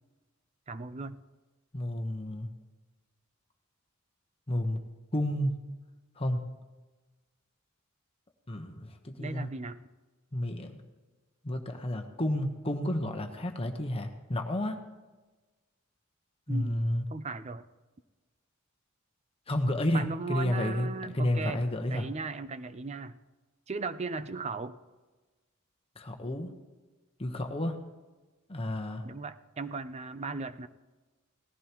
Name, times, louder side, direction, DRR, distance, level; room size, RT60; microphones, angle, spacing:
voice 1, 0.7-1.2 9.2-9.8 16.5-16.8 17.1-17.6 19.9-21.6 21.9-23.2 23.7-24.8 29.0-30.7, right 4 dB, 30° right, 13 dB, 0.5 m, -37 dB
voice 2, 1.7-2.5 4.5-4.8 5.1-5.5 6.2-6.4 8.5-9.5 10.3-10.8 11.4-14.8 16.5-17.0 19.5-20.9 21.1-22.1 26.0-26.5 27.2-27.8 28.5-29.0, left 1 dB, 25° left, 4 dB, 1.1 m, -31 dB
18.5 x 15.0 x 3.1 m, 1.2 s
head